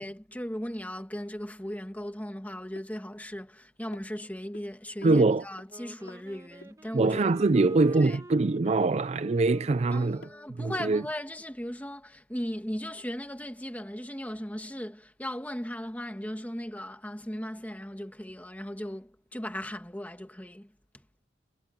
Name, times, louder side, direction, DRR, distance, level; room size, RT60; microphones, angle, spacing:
voice 1, 0.0-7.3 8.0-8.2 9.9-20.7, equal, 10° left, 1.9 m, -37 dB
sound 1, 2.8-2.9 3.9-4.6 5.0-5.2 5.6-5.7 6.1-6.2 6.6-6.7 7.1-7.7 8.1-8.3 8.7-8.8 9.2-9.3 9.7-9.8 10.2-10.3 11.0-11.1, left 2 dB, 65° left, 4.8 m, -50 dB
voice 2, 5.0-5.4 6.9-10.3 10.6-11.0, right 3 dB, 35° right, 0.4 m, -23 dB
Wind instrument woodwind instrument, 5.7-10.7, right 1 dB, 15° right, 1.6 m, -49 dB
head